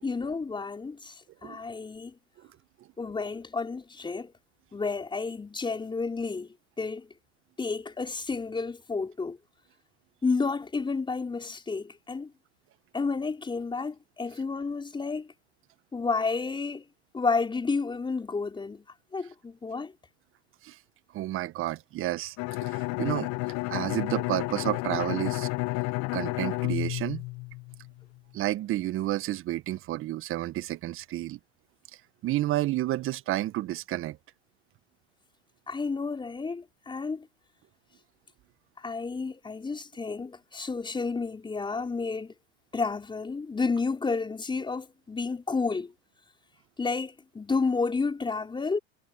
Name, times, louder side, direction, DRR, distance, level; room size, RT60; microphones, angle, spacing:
voice 1, 0.0-2.1 3.0-4.3 4.7-7.1 7.6-9.4 10.2-12.3 12.9-15.3 15.9-16.8 17.1-18.8 19.1-19.9 35.7-37.3 38.8-42.3 42.7-45.9 46.8-48.8, left 4 dB, 15° left, 5.2 m, -31 dB
voice 2, 21.1-22.4 22.6-23.3 23.7-25.5 26.1-27.2 28.3-31.4 32.2-34.2, right 15 dB, 40° right, 1.6 m, -30 dB
Bowed string instrument, 22.4-28.0, left 26 dB, 45° left, 1.0 m, -31 dB
hypercardioid pair, 95°, 33 cm